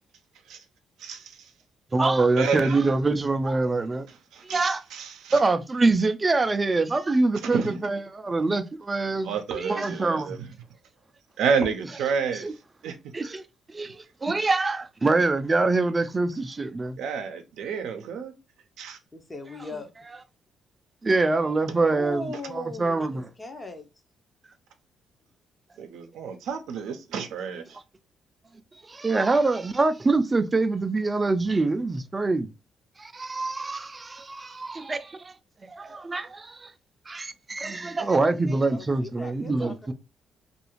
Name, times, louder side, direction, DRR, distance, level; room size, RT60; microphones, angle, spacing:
voice 1, 1.0-1.5 2.4-2.8 4.3-5.4 7.4-7.8 9.2-10.5 11.4-12.5 12.8-12.9 17.0-18.3 18.8-19.0 25.8-27.6, right 6 dB, 80° right, 0.5 m, -30 dB
voice 2, 1.9-4.1 4.4-4.8 5.3-10.4 12.4-12.5 13.1-13.4 13.7-17.0 21.0-23.2 28.9-32.5 33.0-35.3 35.6-36.7 37.1-39.9, right 3 dB, 25° right, 0.4 m, -25 dB
voice 3, 19.1-19.9 21.9-23.9 38.7-39.9, left 2 dB, 25° left, 0.6 m, -38 dB
2.5 x 2.3 x 3.0 m
cardioid pair, 90°, 0 cm